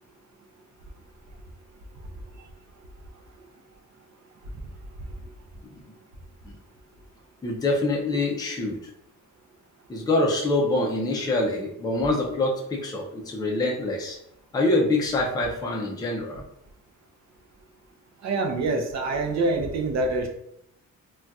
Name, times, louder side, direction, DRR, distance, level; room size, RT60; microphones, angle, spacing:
voice 1, 7.4-8.8 9.9-14.2 14.5-16.4, left 2 dB, 15° left, -1 dB, 0.4 m, -25 dB
voice 2, 18.2-20.3, right 3 dB, 55° right, 4 dB, 0.5 m, -25 dB
3.9 x 2.3 x 2.3 m, 0.76 s
wide cardioid pair, 160°, 32 cm